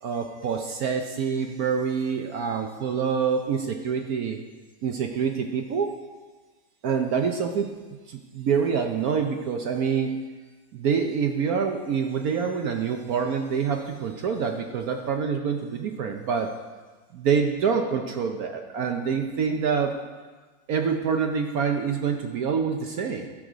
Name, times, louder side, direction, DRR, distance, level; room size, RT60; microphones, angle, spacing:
voice 1, 0.0-4.4 4.8-6.0 6.8-7.7 8.1-10.1 10.7-16.5 17.1-19.9 20.7-23.3, right 6 dB, 65° right, 4 dB, 1.0 m, -26 dB
13.5 x 6.4 x 5.1 m, 1.3 s
omnidirectional pair, 2.1 m